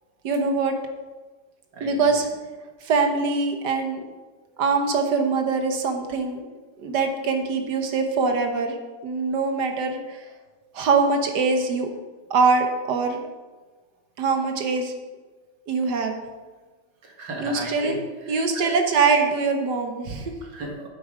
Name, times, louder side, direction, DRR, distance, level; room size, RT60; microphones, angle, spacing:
voice 1, 0.2-0.7 1.8-2.3 2.8-4.0 4.6-6.4 6.8-8.7 9.0-10.2 10.7-11.9 12.3-13.2 14.2-14.9 15.7-16.1 17.4-18.0 18.3-20.3, right 4 dB, 70° right, 5 dB, 1.6 m, -23 dB
voice 2, 1.7-2.1 17.0-18.0 18.3-18.7 20.4-20.9, right 2 dB, 90° right, 0 dB, 2.5 m, -35 dB
8.3 x 7.9 x 5.0 m, 1.3 s
omnidirectional pair, 1.9 m